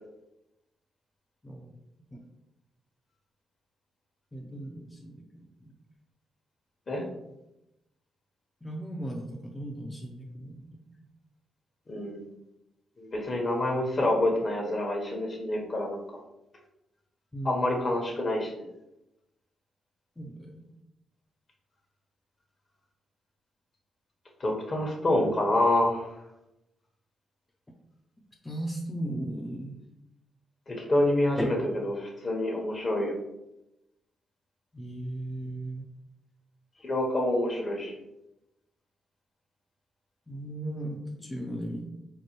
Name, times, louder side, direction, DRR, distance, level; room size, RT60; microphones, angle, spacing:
voice 1, 4.3-5.2 5.6-5.7 8.6-10.6 17.3-17.5 20.2-20.6 28.4-29.8 31.4-31.5 34.7-35.8 40.3-41.9, right 1 dB, 15° left, -1 dB, 0.6 m, -36 dB
voice 2, 11.9-12.2 13.0-16.0 17.4-18.5 24.4-26.1 30.7-33.1 36.8-37.9, left 1 dB, 45° left, 0 dB, 1.1 m, -27 dB
4.5 x 2.2 x 3.1 m, 0.89 s
supercardioid pair, 50°, 0 cm